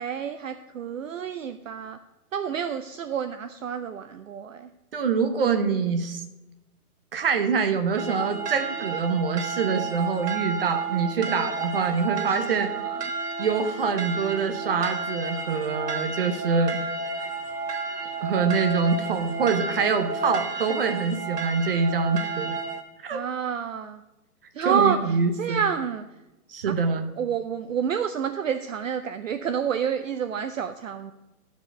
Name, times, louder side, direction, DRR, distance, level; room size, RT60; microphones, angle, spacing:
voice 1, 0.0-2.0 2.3-4.7 11.3-11.5 12.1-13.0 23.1-24.0 24.6-25.0 25.4-26.0 26.7-26.8 27.2-31.1, right 7 dB, 60° right, 9 dB, 0.6 m, -29 dB
voice 2, 4.9-6.2 7.1-12.7 13.4-16.8 18.2-22.6 23.0-23.2 24.6-25.6 26.5-27.1, right 5 dB, 40° right, 7 dB, 0.9 m, -25 dB
sound 1, 8.0-22.8, right 4 dB, 85° right, 1.6 m, -31 dB
11.5 x 5.2 x 6.5 m, 1.0 s
hypercardioid pair, 175°, 46 cm